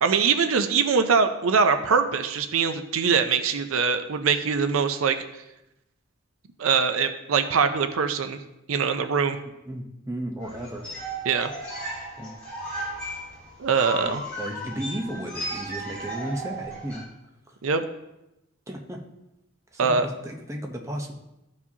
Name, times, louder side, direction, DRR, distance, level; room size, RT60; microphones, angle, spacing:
voice 1, 0.0-5.4 6.6-8.4 8.7-9.4 11.2-11.5 13.6-14.2 17.6-17.8 19.8-20.1, right 5 dB, 80° right, 9 dB, 0.5 m, -23 dB
voice 2, 9.7-10.8 12.2-12.3 14.0-17.0 17.5-17.6 18.7-19.0 19.7-21.1, right 1 dB, 15° right, 2 dB, 0.7 m, -34 dB
sound 1, 10.4-17.0, right 1 dB, 5° left, 2.3 m, -35 dB
13.5 x 4.8 x 2.8 m, 0.91 s
head